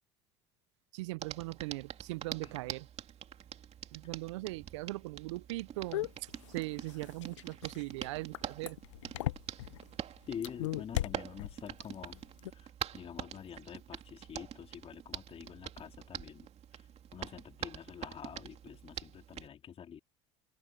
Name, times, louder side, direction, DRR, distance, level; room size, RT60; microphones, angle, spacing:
voice 1, 0.9-2.9 3.9-6.1 6.5-8.8, right 21 dB, 80° right, 0.5 m, -40 dB
Hands, 1.2-19.5, right 9 dB, 45° right, 2.6 m, -45 dB
sound 1, 5.9-9.8 10.3-11.9 12.2-12.5, left 14 dB, 90° left, 0.6 m, -37 dB
voice 2, 10.3-12.2 12.5-16.9 17.1-20.0, left 8 dB, 40° left, 2.5 m, -47 dB
open air
hypercardioid pair, 75°, 15 cm